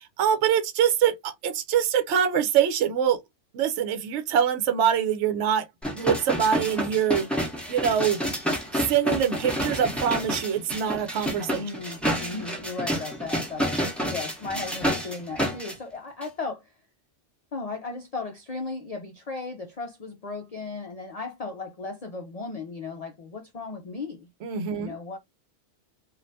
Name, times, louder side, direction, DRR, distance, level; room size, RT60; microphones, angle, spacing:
voice 1, 0.2-3.2 3.5-5.6 5.9-7.3 7.7-8.2 8.7-11.6 24.4-24.9, right 8 dB, 75° right, 0.9 m, -24 dB
sound 1, 5.8-15.7 16.2-16.3, equal, ahead, 0.7 m, -29 dB
voice 2, 11.5-16.8 17.5-24.3 24.7-25.2, left 3 dB, 55° left, 0.4 m, -36 dB
3.2 x 2.4 x 2.6 m
omnidirectional pair, 1.2 m